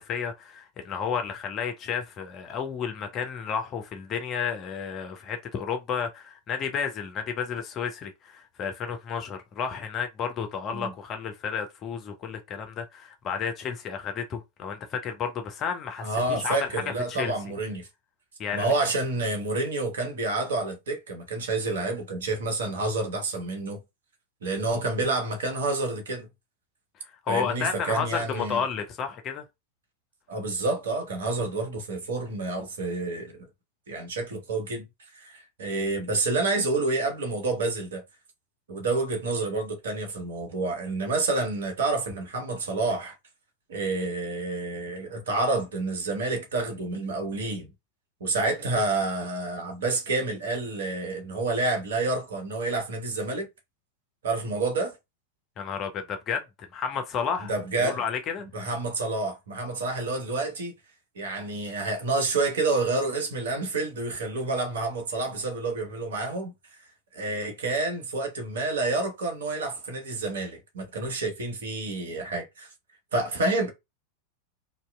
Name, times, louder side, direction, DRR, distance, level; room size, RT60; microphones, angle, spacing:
voice 1, 0.0-16.8 17.1-17.3 18.4-18.7 27.0-29.4 55.6-57.5 57.8-58.5, left 7 dB, 30° left, 0.6 m, -32 dB
voice 2, 16.0-17.9 18.5-23.8 24.4-26.3 27.3-28.6 30.3-33.4 33.9-34.9 35.1-38.0 38.7-43.1 43.7-47.7 48.2-53.5 54.2-55.0 57.5-58.0 58.5-60.7 61.2-66.5 67.1-72.7 73.1-73.7, right 3 dB, 65° right, 0.8 m, -29 dB
2.7 x 2.2 x 2.2 m
figure-of-eight pair, 90°, 0 cm